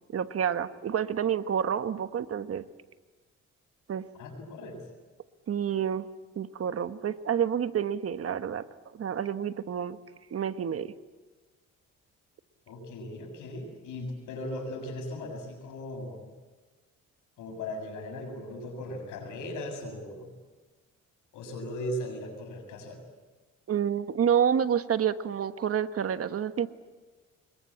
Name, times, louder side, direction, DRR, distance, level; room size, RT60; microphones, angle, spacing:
voice 1, 0.1-2.6 3.9-4.0 5.5-6.1 6.4-8.6 8.9-10.0 10.3-10.9 23.7-26.7, right 8 dB, 50° right, 11 dB, 1.3 m, -28 dB
voice 2, 4.2-4.8 12.7-16.3 17.4-20.3 21.3-23.0, left 1 dB, 90° left, 4 dB, 7.1 m, -38 dB
26.5 x 22.0 x 8.6 m, 1.3 s
cardioid pair, 90°, 30 cm